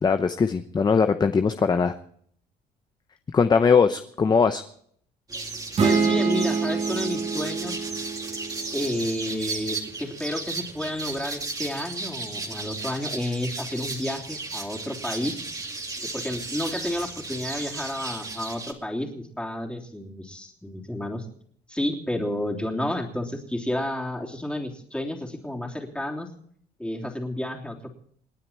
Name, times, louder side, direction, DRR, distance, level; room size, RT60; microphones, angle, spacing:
voice 1, 0.0-1.9 3.3-4.6, left 5 dB, 25° left, 9 dB, 0.8 m, -20 dB
sound 1, 5.3-18.7, right 3 dB, 20° right, 2.3 m, -35 dB
voice 2, 5.8-7.8 8.7-15.4 16.1-21.3 21.7-26.3 26.8-27.9, left 1 dB, 5° left, 0 dB, 3.3 m, -31 dB
sound 2, 5.8-9.5, right 5 dB, 40° right, 2.4 m, -26 dB
28.5 x 9.6 x 4.4 m, 0.62 s
cardioid pair, 110°, 17 cm